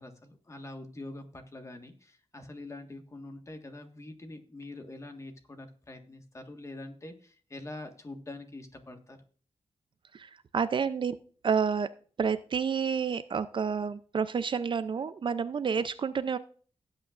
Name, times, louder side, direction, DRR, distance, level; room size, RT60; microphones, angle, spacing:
voice 1, 0.0-9.2, left 2 dB, 25° left, 5 dB, 1.5 m, -45 dB
voice 2, 10.1-11.2 11.4-16.4, right 6 dB, 50° right, 13 dB, 0.5 m, -30 dB
17.0 x 8.4 x 2.5 m, 0.42 s
wide cardioid pair, 125°, 11 cm